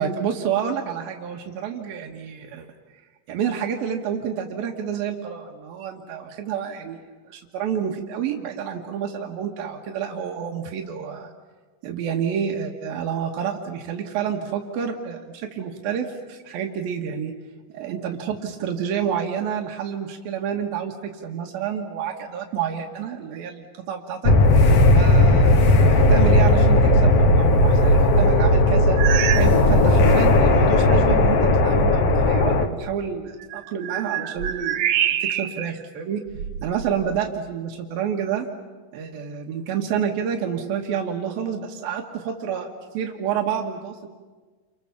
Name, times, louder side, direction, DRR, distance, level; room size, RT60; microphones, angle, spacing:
voice 1, 0.0-2.7 3.3-7.0 7.3-11.3 11.8-17.3 17.7-24.3 24.9-29.0 29.4-36.2 36.6-38.5 38.9-42.7 42.9-44.1, right 8 dB, 90° right, 2 dB, 3.3 m, -29 dB
sound 1, 24.2-32.7, left 1 dB, 55° left, 2.2 m, -16 dB
sound 2, 29.0-29.6 29.9-30.2 30.9-31.0 33.4-35.7 36.3-37.3, right 9 dB, 65° right, 2.3 m, -26 dB
30.0 x 27.0 x 7.2 m, 1.4 s
omnidirectional pair, 4.1 m